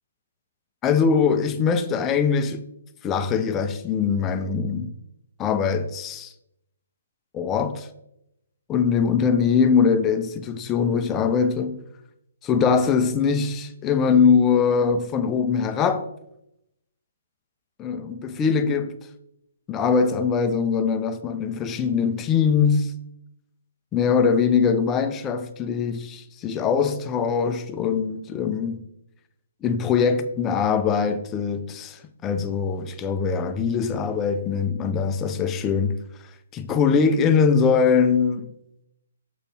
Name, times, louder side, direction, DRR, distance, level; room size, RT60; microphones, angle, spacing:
voice 1, 0.8-2.6 3.0-4.9 5.4-6.3 7.3-7.9 8.7-11.8 12.4-16.1 17.8-18.9 19.7-22.9 23.9-28.8 29.6-36.0 36.5-38.5, left 6 dB, 15° left, 0.5 m, -22 dB
6.9 x 5.2 x 4.4 m
hypercardioid pair, 165°, 0 cm